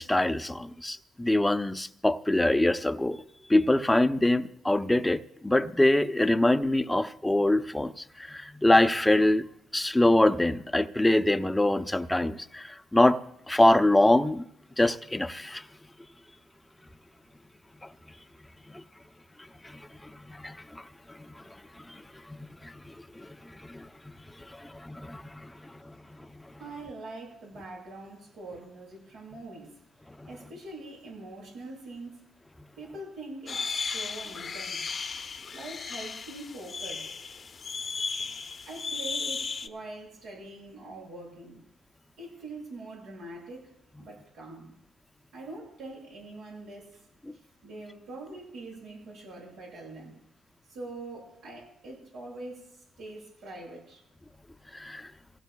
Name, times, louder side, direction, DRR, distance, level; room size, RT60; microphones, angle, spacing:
voice 1, 0.0-3.2 3.5-9.5 9.7-13.2 13.5-14.5 14.8-15.6 17.8-17.9 18.7-18.8 19.6-21.4 21.8-22.0 22.3-25.9 26.3-26.5 30.2-30.3 47.3-47.4 54.7-55.1, left 1 dB, 10° left, 0.6 m, -25 dB
voice 2, 26.6-29.8 30.2-32.2 32.8-34.9 35.5-37.2 38.6-41.7 42.2-43.7 44.0-44.8 45.3-47.0 47.6-50.2 50.7-54.0, right 2 dB, 85° right, 7.0 m, -43 dB
sound 1, 33.5-39.7, left 5 dB, 45° left, 0.8 m, -35 dB
26.0 x 16.5 x 2.3 m
cardioid pair, 80°, 0 cm